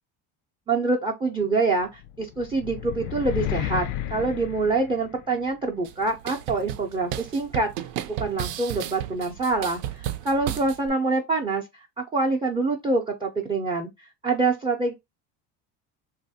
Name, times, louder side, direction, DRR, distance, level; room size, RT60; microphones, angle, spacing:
voice 1, 0.7-7.7 8.2-11.7 12.0-13.9 14.2-14.9, right 3 dB, 10° right, 0.4 m, -25 dB
sound 1, 2.0-5.4, left 12 dB, 90° left, 0.5 m, -32 dB
sound 2, 5.8-10.9, right 12 dB, 70° right, 0.5 m, -34 dB
3.0 x 2.4 x 2.7 m
cardioid pair, 110°, 43 cm